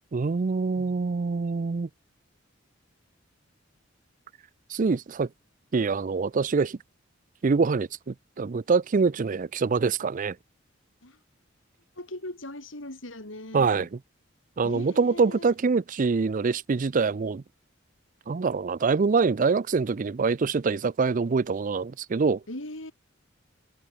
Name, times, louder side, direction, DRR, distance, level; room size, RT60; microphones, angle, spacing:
voice 1, 0.1-1.9 4.7-5.3 5.7-6.8 7.4-10.4 13.5-13.9 14.6-17.4 18.3-22.4, right 4 dB, 40° right, 0.4 m, -25 dB
voice 2, 12.0-13.9 14.6-15.5 22.5-22.9, left 1 dB, 80° left, 6.5 m, -39 dB
head